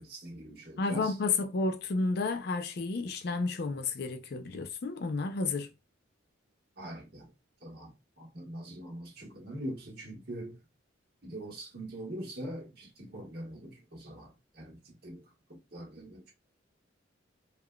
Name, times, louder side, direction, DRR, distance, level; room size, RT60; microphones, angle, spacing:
voice 1, 0.0-1.1 6.8-7.3 7.6-10.6 11.2-15.2 15.7-16.3, right 1 dB, 55° right, 1.3 m, -43 dB
voice 2, 0.8-5.7, left 3 dB, 50° left, 0.4 m, -31 dB
3.6 x 2.3 x 2.2 m
head